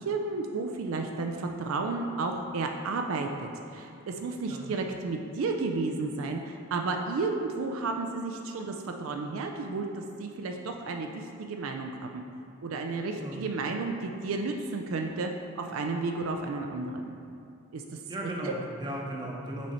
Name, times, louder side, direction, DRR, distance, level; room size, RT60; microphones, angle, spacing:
voice 1, 0.0-12.2 12.6-15.3 15.6-17.2 17.7-18.0 18.4-18.5, right 3 dB, 70° right, 3 dB, 0.4 m, -32 dB
voice 2, 18.1-19.7, right 1 dB, 20° right, -2 dB, 0.8 m, -36 dB
6.1 x 4.3 x 4.2 m, 2.6 s
head